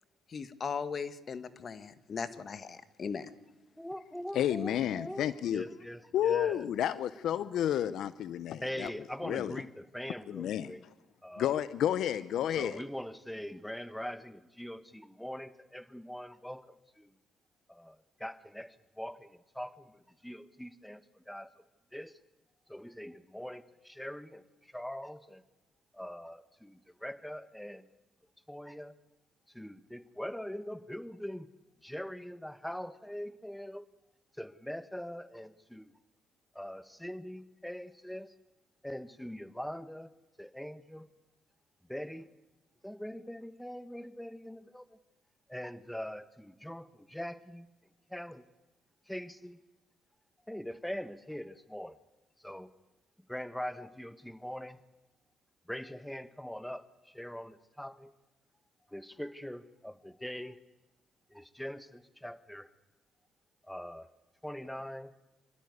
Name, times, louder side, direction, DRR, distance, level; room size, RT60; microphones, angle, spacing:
voice 1, 0.3-3.3, left 6 dB, 45° left, 12 dB, 1.4 m, -38 dB
voice 2, 3.8-6.7 8.6-10.8 11.2-11.6 12.5-17.1 17.7-21.5 21.9-22.1 22.7-25.4 25.9-27.9 28.5-28.9 29.5-31.5 31.8-33.9 34.4-35.9 36.5-38.3 38.8-40.1 40.4-41.1 41.9-42.3 42.8-45.0 45.5-47.7 48.1-48.4 49.1-49.6 50.5-52.0 52.4-52.7 53.3-54.8 55.7-58.1 58.9-60.6 61.3-62.7 63.7-64.1 64.4-65.1, equal, 5° left, 14 dB, 1.1 m, -42 dB
voice 3, 4.3-5.7 6.1-8.9 9.2-9.5 10.3-10.7 11.4-12.8, left 10 dB, 75° left, 16 dB, 0.6 m, -31 dB
25.5 x 13.0 x 9.5 m, 1.1 s
cardioid pair, 80°, 0 cm